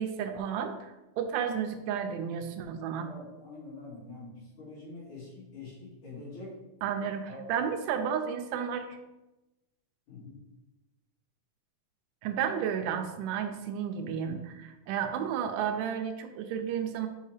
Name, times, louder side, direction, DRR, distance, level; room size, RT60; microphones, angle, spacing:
voice 1, 0.0-3.1 6.8-9.0 12.2-17.1, right 8 dB, 80° right, 6 dB, 2.0 m, -32 dB
voice 2, 3.0-6.5 7.3-7.4 10.1-10.3, left 3 dB, 55° left, -12 dB, 3.4 m, -45 dB
6.9 x 2.8 x 4.8 m, 1.0 s
omnidirectional pair, 4.0 m